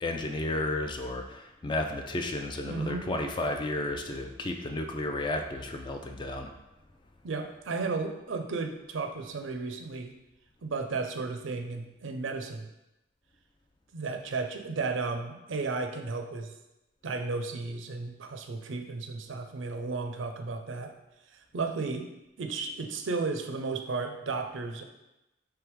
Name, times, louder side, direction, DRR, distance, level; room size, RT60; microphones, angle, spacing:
voice 1, 0.0-6.5, left 2 dB, 25° left, 4 dB, 0.3 m, -32 dB
voice 2, 2.6-3.1 7.2-10.1 10.6-12.7 13.9-16.5 17.0-20.9 21.3-22.1 22.4-24.8, right 4 dB, 85° right, 5 dB, 0.5 m, -34 dB
3.5 x 3.3 x 4.6 m, 0.94 s
head